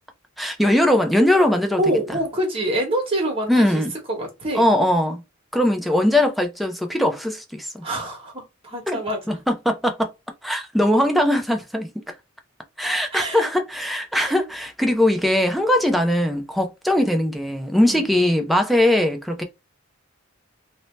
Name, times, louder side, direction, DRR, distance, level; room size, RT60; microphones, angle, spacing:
voice 1, 0.4-1.8 3.5-3.9 4.5-5.2 5.5-7.8 8.9-9.0 9.3-10.1 10.4-11.9 12.8-19.4, left 1 dB, ahead, 0.5 m, -20 dB
voice 2, 1.8-3.8 4.1-4.7 7.8-9.4 13.1-13.5 14.1-14.3 17.8-18.1, right 1 dB, 30° right, 1.1 m, -26 dB
2.7 x 2.1 x 3.1 m
head